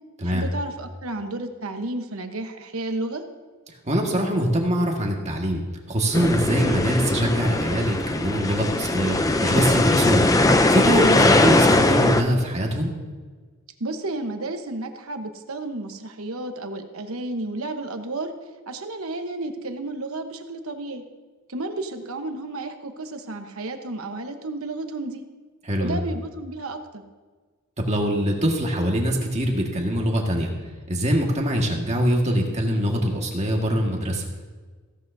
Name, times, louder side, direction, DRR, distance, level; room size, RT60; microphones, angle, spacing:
voice 1, 0.2-3.2 11.0-11.3 13.8-18.3 18.7-21.0 21.5-25.2 25.8-27.0, right 2 dB, 70° right, 6 dB, 1.1 m, -32 dB
voice 2, 3.9-5.6 5.9-10.2 10.7-12.9 25.6-26.0 27.8-30.5 30.9-34.2, equal, 30° right, 0 dB, 1.7 m, -23 dB
sound 1, 6.1-12.2, left 2 dB, 15° left, 0.5 m, -20 dB
15.5 x 12.5 x 2.7 m, 1.4 s
head